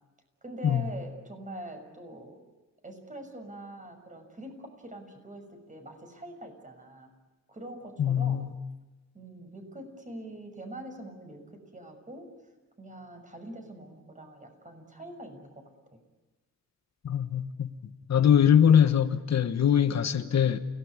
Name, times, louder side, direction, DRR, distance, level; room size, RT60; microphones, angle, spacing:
voice 1, 0.4-2.4 2.8-7.1 7.5-8.5 9.1-12.3 12.8-15.7, right 1 dB, 25° right, 6.4 m, -44 dB
voice 2, 8.0-8.5 17.0-17.7 18.1-20.6, left 9 dB, 65° left, 1.3 m, -22 dB
29.0 x 18.5 x 9.8 m
wide cardioid pair, 100°, 29 cm